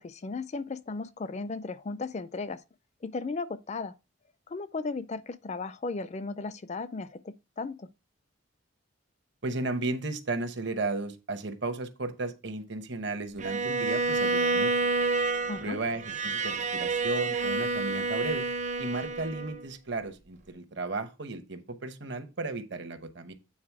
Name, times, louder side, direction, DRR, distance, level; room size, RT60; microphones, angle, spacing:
voice 1, 0.0-2.6 3.0-3.9 4.5-7.9 15.5-15.8, left 3 dB, 35° left, 0.4 m, -35 dB
voice 2, 9.4-14.7 15.6-18.5 18.8-23.3, right 3 dB, 55° right, 1.0 m, -34 dB
Bowed string instrument, 13.4-19.6, right 3 dB, 35° right, 0.6 m, -29 dB
8.7 x 3.9 x 4.7 m
head